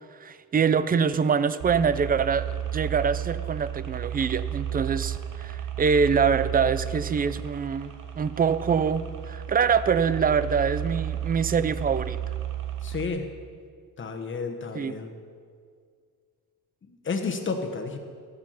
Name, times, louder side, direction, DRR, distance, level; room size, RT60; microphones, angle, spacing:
voice 1, 0.2-12.2 14.7-15.0, right 6 dB, 25° right, 14 dB, 0.4 m, -25 dB
sound 1, 1.6-13.1, right 10 dB, 70° right, 1.0 m, -33 dB
voice 2, 12.8-13.3 14.0-15.1 16.9-18.0, left 4 dB, 35° left, 4 dB, 1.2 m, -31 dB
12.5 x 7.5 x 5.7 m, 2.1 s
cardioid pair, 110°, 33 cm